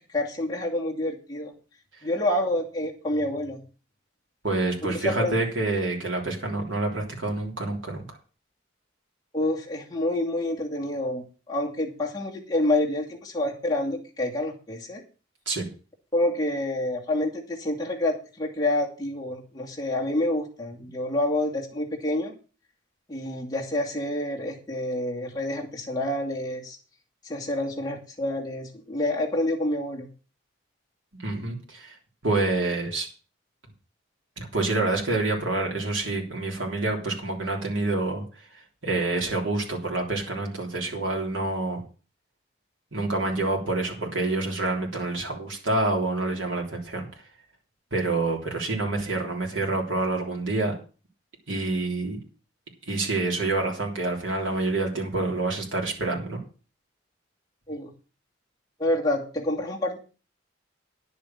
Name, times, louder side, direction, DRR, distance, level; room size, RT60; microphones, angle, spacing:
voice 1, 0.1-1.5 2.0-3.6 5.0-5.3 9.3-15.0 16.1-22.3 23.1-26.8 27.2-30.1 57.7-57.9 58.8-60.0, left 1 dB, 20° left, -2 dB, 2.5 m, -28 dB
voice 2, 4.4-8.0 15.5-15.7 31.2-32.0 32.2-33.1 34.4-38.2 38.8-41.8 42.9-47.1 47.9-50.8 51.5-52.2 52.9-56.4, right 2 dB, 80° right, 0 dB, 3.5 m, -27 dB
10.5 x 6.9 x 7.3 m, 0.36 s
head